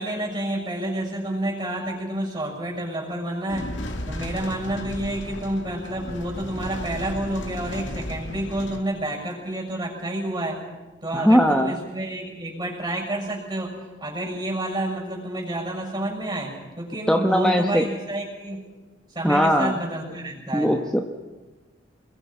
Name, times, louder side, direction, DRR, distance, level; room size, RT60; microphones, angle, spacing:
voice 1, 0.0-3.7 4.1-10.6 11.0-13.7 14.0-18.6 19.1-20.7, right 1 dB, 25° right, 0 dB, 6.9 m, -29 dB
sound 1, 3.5-8.8, left 1 dB, 85° left, 2.4 m, -34 dB
voice 2, 11.1-11.8 17.1-17.8 19.2-19.7 20.5-21.0, equal, 5° left, 2 dB, 1.1 m, -19 dB
28.0 x 22.0 x 5.6 m, 1.2 s
head